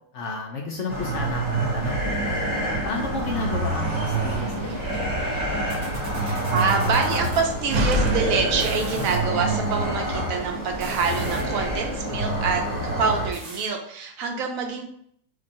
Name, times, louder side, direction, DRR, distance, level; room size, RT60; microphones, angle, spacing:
voice 1, 0.1-2.1 2.8-5.1, left 3 dB, 65° left, 0 dB, 0.7 m, -32 dB
sound 1, 0.9-13.3, right 2 dB, 30° left, 0.3 m, -27 dB
sound 2, 3.3-7.5 8.5-9.2 10.7-11.6 13.3-13.7, right 2 dB, 50° right, 0.5 m, -39 dB
Slam, 3.7-9.3, right 1 dB, 85° right, 1.2 m, -31 dB
voice 2, 4.4-4.8 6.2-12.6 13.0-14.9, right 5 dB, 65° right, 3 dB, 0.9 m, -26 dB
4.2 x 2.9 x 2.6 m, 0.66 s
omnidirectional pair, 1.7 m